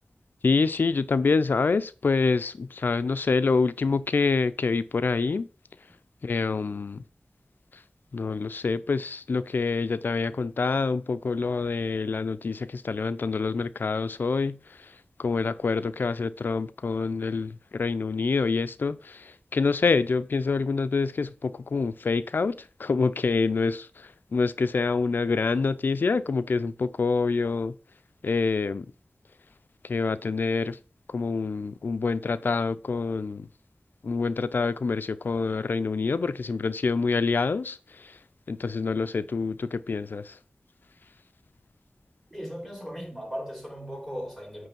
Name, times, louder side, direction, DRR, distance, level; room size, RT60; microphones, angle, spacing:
voice 1, 0.4-5.5 6.2-7.0 8.1-14.6 15.2-19.2 19.5-23.9 24.3-27.7 28.2-28.9 29.9-30.8 31.1-33.5 34.0-37.8 38.5-40.3, left 4 dB, 85° left, 0.4 m, -26 dB
voice 2, 42.3-44.7, equal, 5° right, 3.3 m, -37 dB
8.9 x 3.3 x 5.9 m
wide cardioid pair, 45°, 3 cm